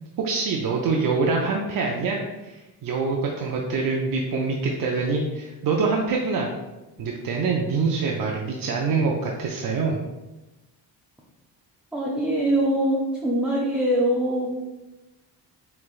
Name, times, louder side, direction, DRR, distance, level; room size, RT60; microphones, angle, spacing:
voice 1, 0.2-6.5 7.0-10.0, right 4 dB, 55° right, 0 dB, 0.6 m, -25 dB
voice 2, 11.9-14.5, right 1 dB, 5° right, -5 dB, 0.5 m, -23 dB
5.7 x 3.2 x 2.4 m, 1.1 s
cardioid pair, 125°, 42 cm